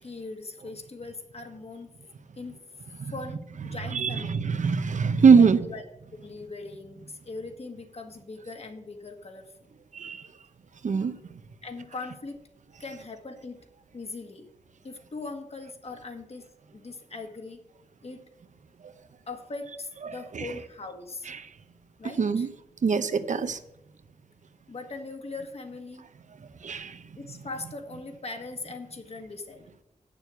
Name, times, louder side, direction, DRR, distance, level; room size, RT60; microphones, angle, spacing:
voice 1, 0.0-1.9 2.3-2.6 3.1-4.6 5.3-5.8 6.2-9.5 11.6-12.4 12.8-13.6 13.9-14.5 14.8-17.6 18.0-18.3 19.3-21.3 22.0-22.5 24.7-26.1 27.1-29.7, left 3 dB, 50° left, 5 dB, 1.6 m, -40 dB
voice 2, 3.9-5.7 9.9-10.3 10.8-11.2 20.0-20.5 21.3-21.5 22.2-22.5 22.8-23.6 26.6-27.0, right 5 dB, 65° right, 11 dB, 0.8 m, -23 dB
8.5 x 6.9 x 8.1 m, 0.82 s
wide cardioid pair, 105°, 13 cm